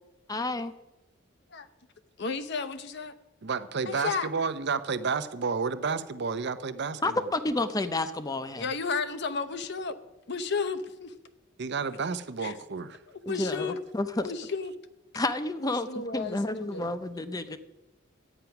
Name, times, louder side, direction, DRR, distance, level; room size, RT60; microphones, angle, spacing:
voice 1, 0.3-0.7 7.0-8.7 13.3-14.3 15.1-17.6, left 2 dB, 20° left, 10 dB, 0.6 m, -30 dB
voice 2, 2.2-3.1 3.9-4.3 8.6-10.0 10.3-11.1 12.4-12.6 13.1-13.8 14.2-14.7 15.6-16.9, left 4 dB, 60° left, 11 dB, 0.8 m, -33 dB
voice 3, 3.4-7.3 11.6-13.0, right 5 dB, 60° right, 12 dB, 0.7 m, -31 dB
12.0 x 9.0 x 5.9 m, 1.0 s
head